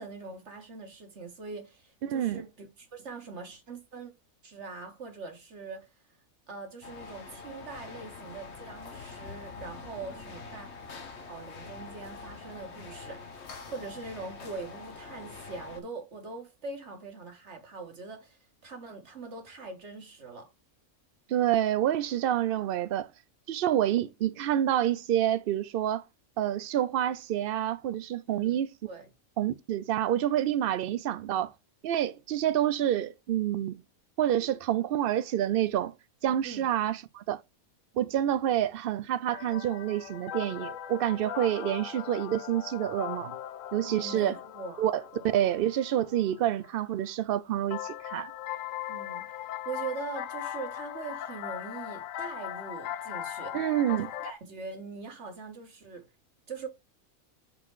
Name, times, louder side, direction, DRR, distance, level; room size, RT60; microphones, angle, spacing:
voice 1, 0.0-4.1 4.4-5.9 6.5-10.7 11.3-20.5 28.3-28.6 28.9-29.1 36.4-36.7 43.9-44.9 45.1-45.3 48.9-53.6 53.9-56.1 56.5-56.7, right 4 dB, 50° right, 1.9 m, -42 dB
voice 2, 2.0-2.4 21.3-23.1 23.5-26.0 26.4-28.7 29.4-31.5 31.8-33.8 34.2-35.9 36.2-37.4 38.0-43.4 43.7-44.4 44.8-45.0 45.3-48.3 53.5-54.1, right 11 dB, 85° right, 0.5 m, -28 dB
sound 1, 6.8-15.8, left 4 dB, 50° left, 1.3 m, -45 dB
sound 2, 39.3-46.7 47.7-54.3, left 11 dB, 70° left, 0.9 m, -39 dB
5.7 x 3.9 x 4.7 m
omnidirectional pair, 1.5 m